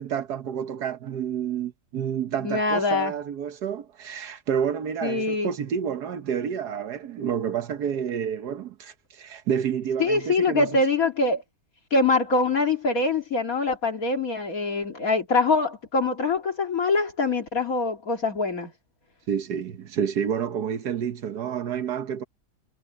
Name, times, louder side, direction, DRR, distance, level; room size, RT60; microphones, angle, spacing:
voice 1, 0.0-10.7 19.3-22.2, right 8 dB, 75° right, 1.6 m, -29 dB
voice 2, 2.4-3.1 5.0-5.5 10.0-11.4 11.9-18.7, left 3 dB, 55° left, 2.6 m, -24 dB
omnidirectional pair, 1.7 m